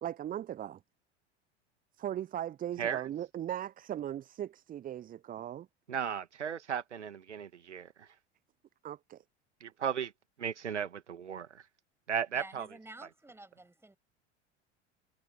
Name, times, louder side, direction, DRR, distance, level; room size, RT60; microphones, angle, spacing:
voice 1, 0.0-0.8 2.0-5.7 8.8-9.2, right 11 dB, 25° right, 0.8 m, -38 dB
voice 2, 5.9-8.1 9.6-10.1 10.4-11.6 12.1-12.7, right 8 dB, 75° right, 2.1 m, -35 dB
voice 3, 12.3-14.0, right 2 dB, 5° right, 6.5 m, -50 dB
figure-of-eight pair, 75°, 35 cm